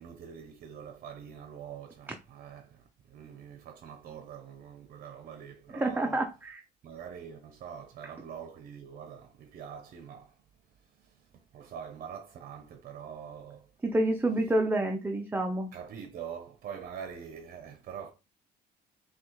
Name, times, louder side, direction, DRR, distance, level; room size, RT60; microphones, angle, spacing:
voice 1, 0.0-6.2 6.8-10.3 10.8-13.7 15.7-18.1, right 8 dB, 55° right, 0.6 m, -44 dB
voice 2, 5.7-6.6 13.8-15.7, right 1 dB, 10° right, 0.5 m, -28 dB
6.0 x 2.3 x 3.0 m
cardioid pair, 110°, 17 cm